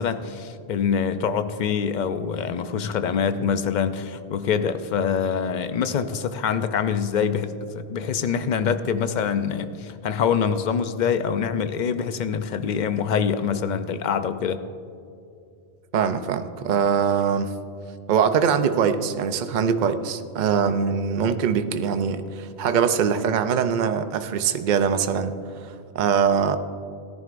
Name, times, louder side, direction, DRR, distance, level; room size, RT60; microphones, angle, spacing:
voice 1, 0.0-14.6, left 7 dB, 55° left, 10 dB, 0.6 m, -25 dB
voice 2, 15.9-17.5 18.1-26.6, right 7 dB, 55° right, 9 dB, 0.7 m, -23 dB
17.5 x 10.5 x 2.5 m, 2.5 s
omnidirectional pair, 1.1 m